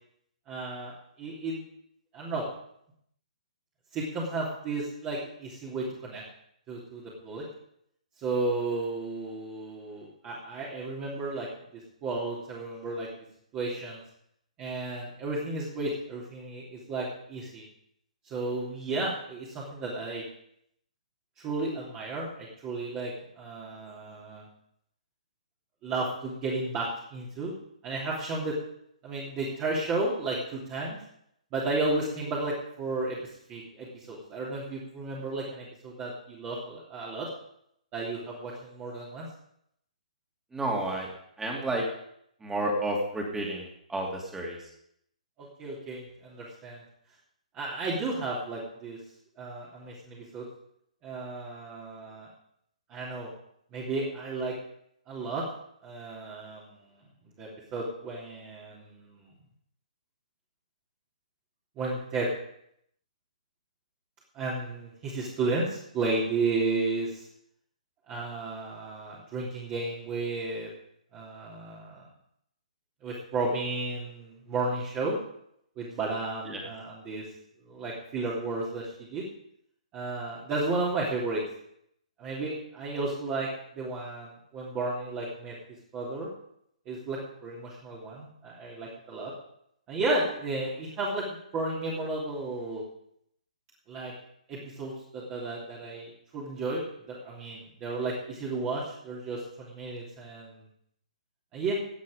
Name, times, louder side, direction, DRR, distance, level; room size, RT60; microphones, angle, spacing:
voice 1, 0.5-1.6 2.1-2.5 3.9-6.2 6.7-7.4 8.2-11.5 11.7-13.1 13.5-14.0 14.6-17.6 18.3-20.2 21.4-24.5 25.8-27.5 27.8-28.5 29.0-31.0 31.5-33.2 33.5-37.3 37.9-39.3 45.4-46.8 47.5-49.0 49.4-50.4 51.0-52.3 52.9-53.3 53.7-54.5 55.1-55.4 55.8-57.0 57.4-59.3 61.8-62.3 64.3-67.3 68.1-70.7 71.1-72.0 73.0-75.2 75.8-77.3 77.6-79.2 79.9-81.4 82.2-85.6 85.9-86.3 86.8-89.3 89.9-91.2 91.5-92.8 93.9-94.1 94.5-100.7 101.5-101.8, right 2 dB, 25° right, -6 dB, 3.1 m, -33 dB
voice 2, 40.5-41.1 41.4-41.9 42.4-44.7 76.4-76.6, right 1 dB, 10° right, -1 dB, 2.9 m, -31 dB
16.0 x 8.6 x 5.1 m, 0.72 s
figure-of-eight pair, 135°, 4 cm